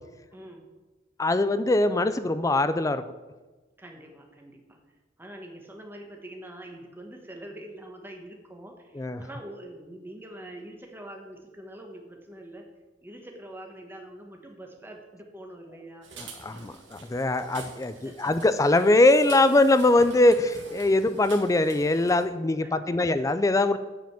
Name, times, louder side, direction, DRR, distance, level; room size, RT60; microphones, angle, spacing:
voice 1, 0.3-0.7 3.8-4.8 5.2-12.7 13.0-16.1 17.9-18.5 22.6-23.2, right 1 dB, 10° right, 2 dB, 1.2 m, -44 dB
voice 2, 1.2-3.0 9.0-9.2 16.4-23.8, left 2 dB, 15° left, 12 dB, 0.3 m, -22 dB
sound 1, 16.0-22.2, right 3 dB, 65° right, 1.8 m, -46 dB
8.9 x 5.1 x 7.3 m, 1.2 s
head